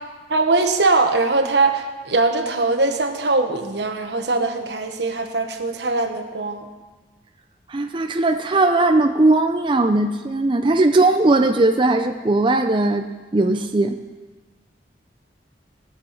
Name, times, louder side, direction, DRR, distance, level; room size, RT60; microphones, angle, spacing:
voice 1, 0.3-6.6, right 3 dB, 70° right, 6 dB, 1.3 m, -21 dB
voice 2, 7.7-13.1 13.3-14.0, right 2 dB, 30° right, 5 dB, 0.6 m, -18 dB
20.0 x 7.7 x 5.9 m, 1.3 s
head